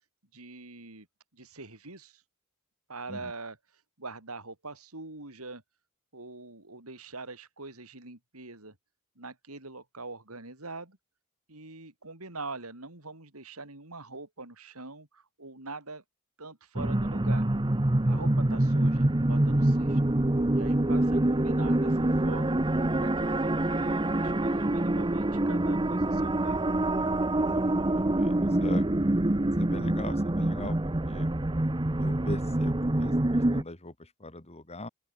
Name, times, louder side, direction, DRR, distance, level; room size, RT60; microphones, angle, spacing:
voice 1, 0.3-1.1 1.3-2.2 2.9-3.6 4.0-5.6 6.1-8.7 9.2-11.0 11.5-16.0 16.4-17.5 18.0-20.0 20.5-22.6 23.0-26.6, right 3 dB, 70° right, 4.9 m, -43 dB
sound 1, 16.8-33.6, right 1 dB, 20° right, 0.9 m, -26 dB
voice 2, 27.4-28.9 29.6-31.3 32.0-34.9, left 2 dB, 30° left, 3.1 m, -41 dB
open air
head